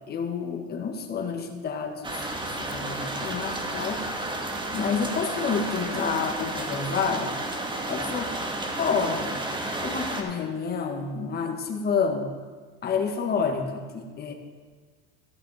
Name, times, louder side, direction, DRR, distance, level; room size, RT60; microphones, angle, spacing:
voice 1, 0.1-4.0 4.7-7.3 7.9-8.3 8.8-9.3 9.8-12.3 12.8-14.3, left 5 dB, 35° left, 3 dB, 1.6 m, -29 dB
sound 1, 2.0-10.2, right 2 dB, 15° right, 1.4 m, -32 dB
14.5 x 8.3 x 4.2 m, 1.5 s
supercardioid pair, 115°, 30 cm